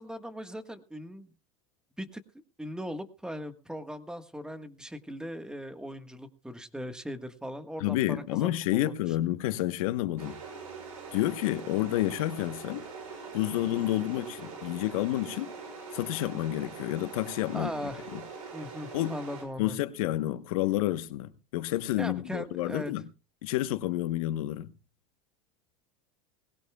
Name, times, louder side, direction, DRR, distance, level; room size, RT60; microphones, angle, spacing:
voice 1, 0.0-1.3 2.0-2.2 2.6-9.1 17.5-18.1 18.5-19.8 22.0-22.9, equal, 5° right, 1.5 m, -39 dB
voice 2, 7.8-10.4 11.1-12.8 13.3-15.5 15.9-17.7 18.1-18.2 18.9-19.2 19.6-23.0 23.4-24.7, left 15 dB, 75° left, 1.1 m, -29 dB
sound 1, 10.2-19.4, right 4 dB, 90° right, 6.3 m, -43 dB
20.0 x 17.0 x 2.3 m
supercardioid pair, 110°, 18 cm